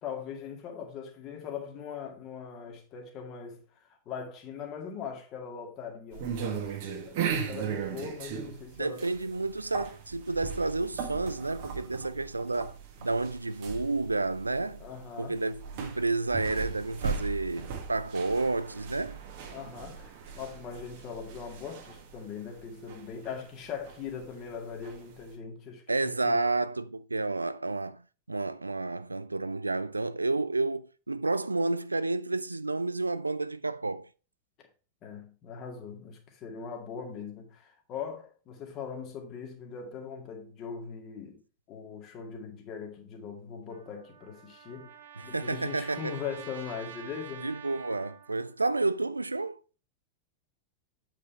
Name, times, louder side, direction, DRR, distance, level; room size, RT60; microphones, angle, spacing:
voice 1, 0.0-9.0 14.8-15.4 19.5-26.5 35.0-41.4 41.7-44.9 45.2-47.5, left 6 dB, 35° left, 2.1 m, -41 dB
sound 1, 6.1-25.3, right 6 dB, 50° right, 1.7 m, -38 dB
voice 2, 8.8-14.8 15.2-19.2 25.9-28.0 28.3-34.1 45.2-46.1 47.4-49.6, right 3 dB, 80° right, 0.3 m, -30 dB
Trumpet, 43.7-48.5, right 8 dB, 65° right, 1.1 m, -48 dB
8.5 x 5.1 x 4.4 m
figure-of-eight pair, 90°, 0 cm